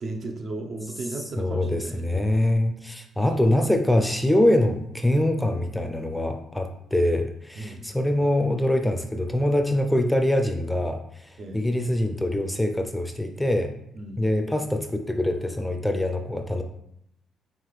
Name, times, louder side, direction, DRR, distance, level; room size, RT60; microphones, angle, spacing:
voice 1, 0.0-2.2 7.6-7.9 11.4-11.7 14.0-14.2, right 2 dB, 50° right, 3 dB, 0.7 m, -35 dB
voice 2, 1.4-13.7 14.2-16.6, left 1 dB, 5° left, 5 dB, 0.5 m, -24 dB
5.6 x 2.5 x 3.2 m, 0.74 s
cardioid pair, 90°, 0 cm